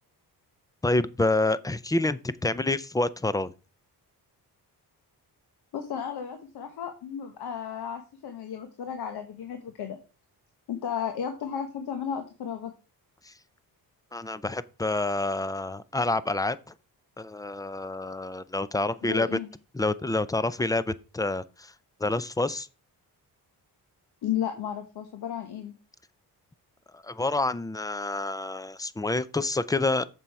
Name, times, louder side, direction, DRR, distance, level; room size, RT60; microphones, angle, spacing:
voice 1, 0.8-3.5 13.3-13.4 14.1-16.6 17.2-19.4 19.7-21.7 22.0-22.7 26.9-30.1, left 2 dB, 10° left, 0.4 m, -28 dB
voice 2, 5.7-10.0 10.7-12.7 19.0-19.5 24.2-25.7, left 8 dB, 80° left, 1.3 m, -34 dB
7.2 x 6.9 x 4.7 m
cardioid pair, 110°, 38 cm